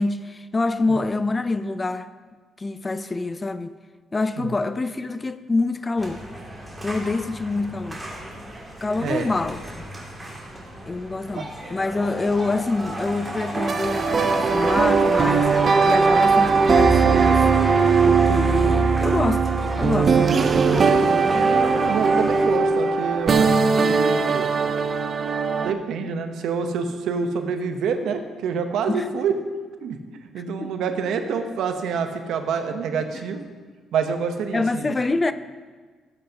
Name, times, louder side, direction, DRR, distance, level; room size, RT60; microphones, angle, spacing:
voice 1, 0.0-2.1 2.6-3.8 4.1-6.2 6.8-8.0 8.8-9.9 10.8-17.5 18.1-19.5 19.8-20.4 20.7-21.3 28.9-29.1 30.6-30.8 34.5-35.3, left 3 dB, 25° left, 0.4 m, -26 dB
sound 1, 6.0-22.5, right 2 dB, 15° right, 2.5 m, -29 dB
sound 2, 13.5-25.7, right 5 dB, 45° right, 0.6 m, -19 dB
voice 2, 21.8-24.5 25.6-29.3 29.8-30.0 30.3-33.5 33.9-35.0, right 6 dB, 80° right, 0.9 m, -27 dB
15.0 x 7.9 x 2.9 m
cardioid pair, 90°, 0 cm